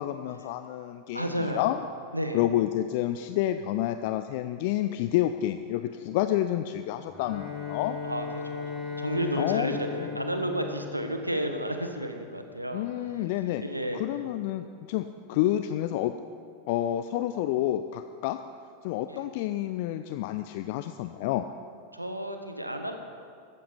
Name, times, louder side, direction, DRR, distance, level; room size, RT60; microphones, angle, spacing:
voice 1, 0.0-1.8 2.3-8.0 9.4-10.1 12.7-13.6 13.9-16.1 16.7-18.4 18.8-21.5, left 13 dB, 50° left, 10 dB, 0.5 m, -29 dB
voice 2, 1.1-1.6 2.1-2.4 8.0-12.9 13.6-14.0 19.1-19.2 21.9-23.0, equal, 85° right, 5 dB, 1.4 m, -32 dB
Bowed string instrument, 7.1-11.7, left 6 dB, 30° left, 4.7 m, -37 dB
14.5 x 13.0 x 5.3 m, 2.3 s
figure-of-eight pair, 90°, 0 cm